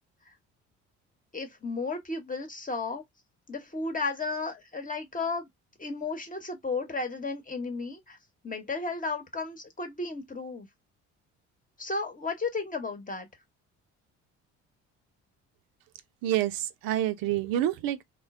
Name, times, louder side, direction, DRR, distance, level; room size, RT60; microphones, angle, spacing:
voice 1, 1.3-3.0 3.5-5.5 5.8-8.2 8.4-10.7 11.8-13.3, left 3 dB, 20° left, 1.0 m, -33 dB
voice 2, 16.2-18.0, right 12 dB, 70° right, 0.5 m, -28 dB
3.1 x 2.2 x 2.3 m
hypercardioid pair, 60°, 36 cm